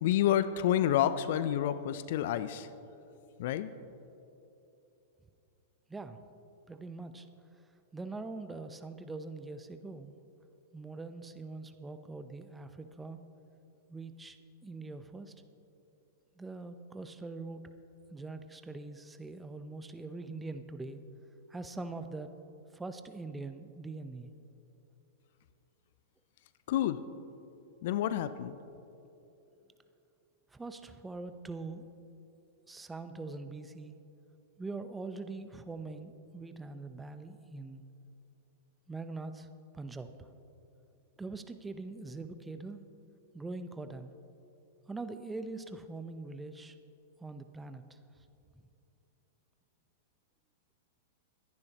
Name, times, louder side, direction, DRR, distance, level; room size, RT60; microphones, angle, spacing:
voice 1, 0.0-2.7 3.4-3.7 26.7-27.0 27.8-28.6, left 11 dB, 60° left, 14 dB, 0.6 m, -29 dB
voice 2, 6.7-7.3 7.9-10.1 10.7-13.2 13.9-14.4 14.6-15.3 16.4-17.6 18.1-21.0 21.5-22.3 22.7-24.3 30.5-31.9 32.7-34.0 34.6-37.8 38.9-39.5 39.7-40.3 41.2-42.8 43.3-44.1 44.9-46.7 47.2-48.0, right 3 dB, 10° right, 9 dB, 0.8 m, -43 dB
22.5 x 10.5 x 3.0 m, 2.9 s
hypercardioid pair, 105°, 0 cm